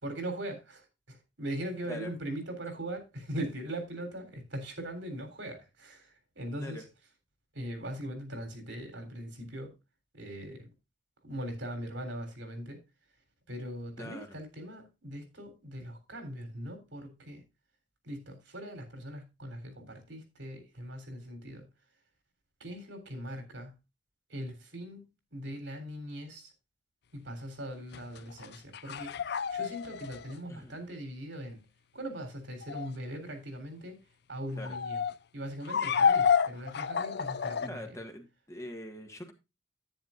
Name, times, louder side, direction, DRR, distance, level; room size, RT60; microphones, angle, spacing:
voice 1, 0.0-6.8 7.5-9.7 10.1-10.7 11.2-12.8 13.5-17.4 18.0-21.7 22.6-23.7 24.3-26.5 27.1-31.6 31.9-34.0 34.3-35.0 35.3-38.0, right 1 dB, 75° right, 3.6 m, -40 dB
voice 2, 14.0-14.4 30.5-30.8 34.6-34.8 37.6-39.3, left 1 dB, 15° left, 1.5 m, -43 dB
sound 1, 27.9-30.3 32.6-32.9 34.6-35.1 35.7-37.7, left 6 dB, 60° left, 0.5 m, -29 dB
10.5 x 9.8 x 2.5 m
head